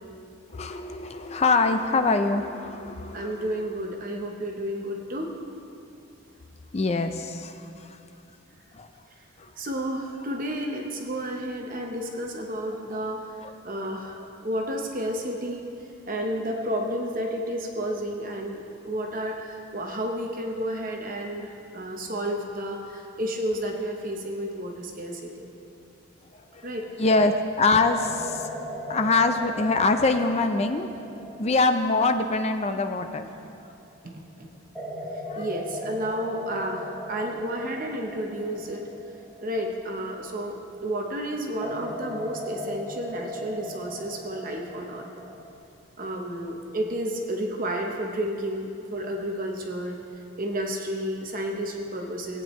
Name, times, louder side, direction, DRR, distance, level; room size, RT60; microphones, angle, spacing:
voice 1, 0.5-3.3 6.7-8.0 8.7-8.9 9.4-9.5 13.4-13.5 26.5-26.7 27.0-30.9 31.4-33.2 33.6-33.7 35.3-35.5, left 3 dB, 30° left, 7 dB, 0.4 m, -24 dB
voice 2, 3.1-5.3 9.6-13.3 13.6-15.6 16.1-18.6 18.8-25.5 26.6-27.0 34.0-34.5 35.4-38.8 39.4-40.5 40.8-45.1 46.0-50.0 50.4-52.4, equal, 40° right, 1 dB, 0.9 m, -31 dB
sound 1, 26.5-27.0 27.9-33.8 34.7-40.7 41.6-45.5, equal, 5° left, 0.9 m, -38 dB
18.5 x 9.0 x 3.1 m, 2.6 s
head